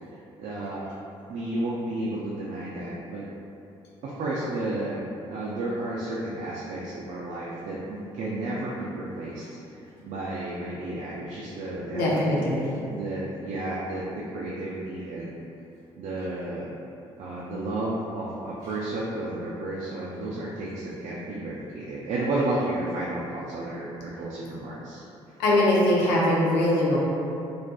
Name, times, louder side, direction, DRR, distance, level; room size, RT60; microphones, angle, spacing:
voice 1, 0.4-0.9 1.3-3.2 4.0-5.0 5.3-9.4 10.0-12.5 12.9-15.4 16.0-16.7 17.2-25.1, right 2 dB, 65° right, -6 dB, 0.4 m, -32 dB
voice 2, 11.9-12.7 25.4-27.0, left 1 dB, 85° left, -5 dB, 0.5 m, -22 dB
2.4 x 2.3 x 2.3 m, 2.7 s
hypercardioid pair, 55°, 13 cm